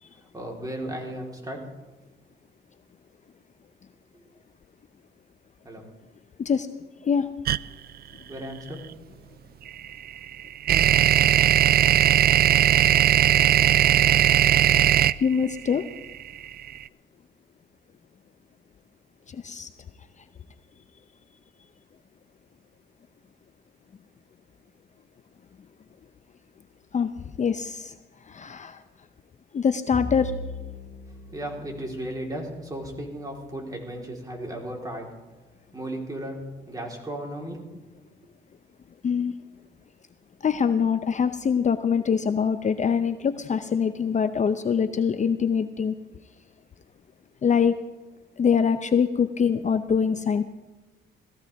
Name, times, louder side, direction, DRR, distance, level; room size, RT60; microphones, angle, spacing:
voice 1, 0.1-1.6 5.6-5.9 8.3-8.9 31.3-35.1 35.7-37.8, right 1 dB, 20° right, -1 dB, 3.9 m, -35 dB
sound 1, 7.5-7.6 9.7-16.7, right 11 dB, 50° right, 0.4 m, -18 dB
voice 2, 15.2-15.8 19.3-19.7 26.9-27.1 27.4-27.9 28.3-28.8 29.5-30.3 39.0-39.3 40.4-45.9 47.4-47.8 48.4-50.4, left 6 dB, 35° left, 10 dB, 0.6 m, -24 dB
Bowed string instrument, 29.9-34.5, left 1 dB, ahead, 4.9 m, -40 dB
18.5 x 14.5 x 3.5 m, 1.2 s
cardioid pair, 90°, 20 cm